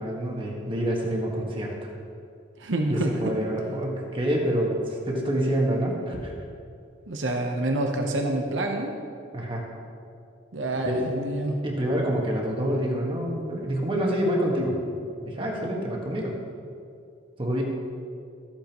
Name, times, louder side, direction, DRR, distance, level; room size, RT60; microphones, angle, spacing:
voice 1, 0.0-1.7 2.9-6.3 9.3-9.7 10.9-11.1 11.6-14.8 15.2-16.4 17.4-17.6, equal, 25° right, -1 dB, 1.5 m, -27 dB
voice 2, 2.6-3.1 7.1-8.9 10.5-11.6, right 1 dB, 80° right, 2 dB, 0.9 m, -27 dB
14.0 x 8.6 x 3.0 m, 2.4 s
head